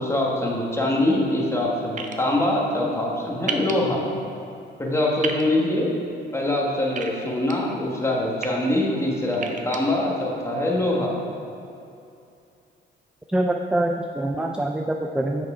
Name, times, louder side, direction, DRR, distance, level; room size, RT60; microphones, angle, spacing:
voice 1, 0.0-4.1 4.8-5.9 6.3-11.1, left 1 dB, 15° left, -2 dB, 1.4 m, -23 dB
sound 1, 2.0-2.1 3.5-3.7 5.2-5.4 7.0-7.5 8.2-8.5 9.3-9.8, right 5 dB, 40° right, 0.6 m, -30 dB
voice 2, 13.3-15.5, right 1 dB, 5° right, 3 dB, 0.3 m, -24 dB
6.1 x 6.0 x 4.9 m, 2.6 s
cardioid pair, 90°, 20 cm